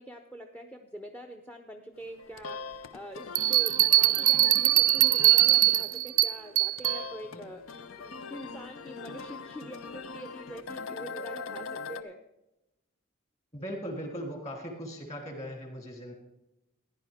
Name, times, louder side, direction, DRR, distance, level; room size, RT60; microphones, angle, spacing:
voice 1, 0.0-12.2, equal, 5° left, 5 dB, 0.6 m, -45 dB
sound 1, 2.0-12.0, left 4 dB, 70° left, 0.6 m, -42 dB
Bell, 3.3-7.0, right 16 dB, 40° right, 0.4 m, -22 dB
voice 2, 13.5-16.1, equal, 35° left, 1 dB, 3.0 m, -39 dB
15.5 x 10.5 x 3.5 m, 0.92 s
head